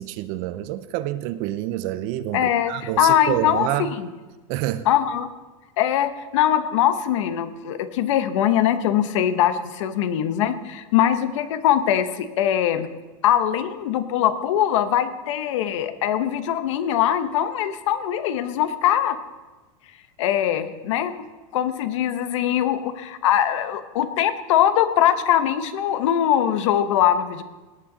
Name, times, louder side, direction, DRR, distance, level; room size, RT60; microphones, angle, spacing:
voice 1, 0.0-3.9 4.5-4.9, right 14 dB, 40° right, 14 dB, 0.5 m, -27 dB
voice 2, 2.3-4.1 4.9-5.3 5.8-12.9 13.2-19.2 20.2-21.1 21.5-27.4, left 10 dB, 60° left, 11 dB, 0.9 m, -22 dB
18.5 x 8.8 x 3.9 m, 1.2 s
supercardioid pair, 165°, 17 cm